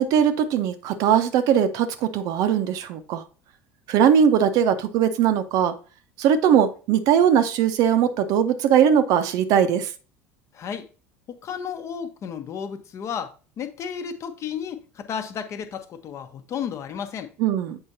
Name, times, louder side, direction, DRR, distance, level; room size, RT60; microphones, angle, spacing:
voice 1, 0.0-3.2 3.9-5.7 6.2-9.9 17.4-17.8, right 8 dB, 55° right, 0.7 m, -20 dB
voice 2, 10.5-10.9 11.3-17.3, left 7 dB, 40° left, 0.9 m, -33 dB
7.8 x 5.3 x 2.7 m
figure-of-eight pair, 70°, 7 cm